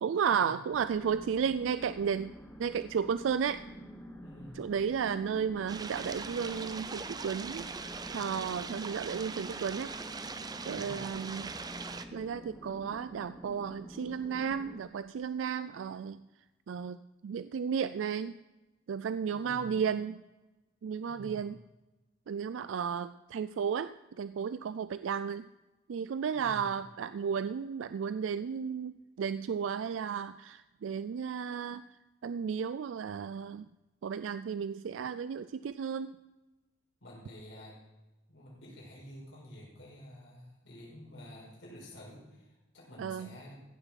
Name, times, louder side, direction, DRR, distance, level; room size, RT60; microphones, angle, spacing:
voice 1, 0.0-2.3 2.6-3.6 4.6-7.7 8.1-9.9 10.7-11.5 12.1-16.2 16.7-18.3 18.9-20.2 20.8-21.6 22.3-23.9 24.2-25.4 25.9-31.8 32.2-33.7 34.0-36.1 43.0-43.3, right 7 dB, 90° right, 13 dB, 0.4 m, -33 dB
sound 1, 0.7-14.8, equal, 5° left, 1.1 m, -48 dB
voice 2, 4.2-4.7 10.7-11.0 19.3-19.7 21.0-21.5 26.3-26.7 37.0-37.8 38.3-43.5, left 1 dB, 75° left, -3 dB, 5.1 m, -50 dB
sound 2, 5.7-12.1, right 4 dB, 20° right, 0.6 m, -41 dB
15.5 x 7.0 x 5.7 m, 1.1 s
head